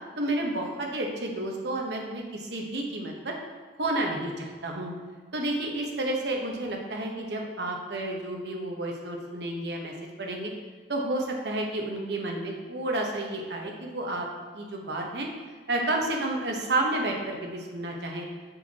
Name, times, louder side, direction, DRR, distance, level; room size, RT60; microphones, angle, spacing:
voice 1, 0.2-3.3 3.8-4.9 5.3-10.5 10.9-14.3 14.5-15.3 15.7-18.3, right 1 dB, 70° right, 0 dB, 1.2 m, -31 dB
6.9 x 6.5 x 2.9 m, 1.5 s
head